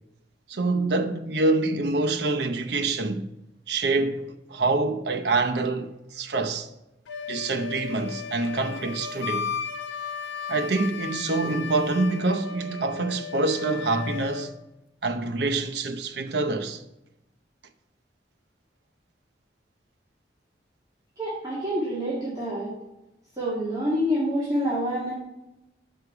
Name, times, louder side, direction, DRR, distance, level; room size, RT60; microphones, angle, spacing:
voice 1, 0.5-3.3 3.7-6.7 7.3-9.5 10.5-14.5 15.0-16.8, right 3 dB, 65° right, 0.7 m, -26 dB
Wind instrument woodwind instrument, 7.1-14.5, left 6 dB, 85° left, 0.9 m, -35 dB
voice 2, 21.2-22.7 23.3-25.1, equal, 20° right, 1.9 m, -27 dB
6.6 x 4.8 x 6.7 m
head